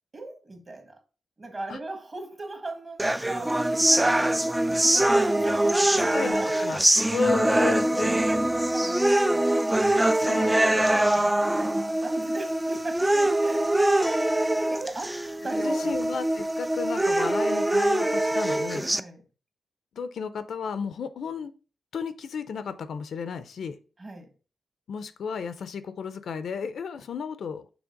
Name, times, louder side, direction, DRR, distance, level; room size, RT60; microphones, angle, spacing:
voice 1, 0.1-1.0 1.4-6.6 7.1-7.2 7.9-9.5 9.9-13.7 14.1-15.9 18.9-19.2 24.0-24.3, right 2 dB, 30° right, 1.3 m, -39 dB
sound 1, 3.0-19.0, right 1 dB, 10° right, 0.3 m, -23 dB
voice 2, 5.9-6.8 7.1-8.2 10.3-11.1 15.6-18.9 20.0-21.5 21.9-23.8 24.9-27.7, left 5 dB, 70° left, 0.5 m, -33 dB
6.2 x 3.3 x 5.1 m
wide cardioid pair, 125°, 0 cm